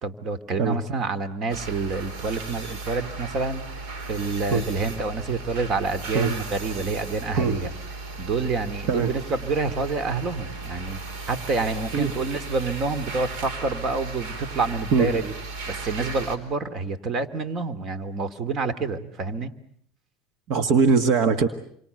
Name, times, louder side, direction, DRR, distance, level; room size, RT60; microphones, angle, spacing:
voice 1, 0.0-7.7 8.2-11.0 11.3-15.3 15.7-19.5, right 3 dB, 40° right, 14 dB, 2.3 m, -28 dB
sound 1, 1.5-16.4, right 3 dB, 75° right, 4.5 m, -36 dB
voice 2, 7.3-7.7 8.9-9.1 11.9-12.1 14.9-15.1 20.5-21.5, right 5 dB, 60° right, 9 dB, 1.8 m, -21 dB
28.5 x 24.5 x 8.0 m, 0.66 s
supercardioid pair, 130°, 0 cm